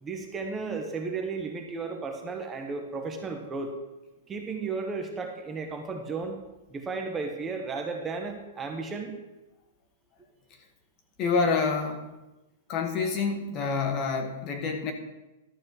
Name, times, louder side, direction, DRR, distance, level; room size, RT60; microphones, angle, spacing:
voice 1, 0.0-3.7 4.3-6.4 6.7-9.1, right 4 dB, 15° right, 3 dB, 1.1 m, -34 dB
voice 2, 11.2-12.1 12.7-14.9, left 4 dB, 30° left, 5 dB, 1.3 m, -27 dB
12.0 x 4.2 x 8.1 m, 1.0 s
hypercardioid pair, 155°, 0 cm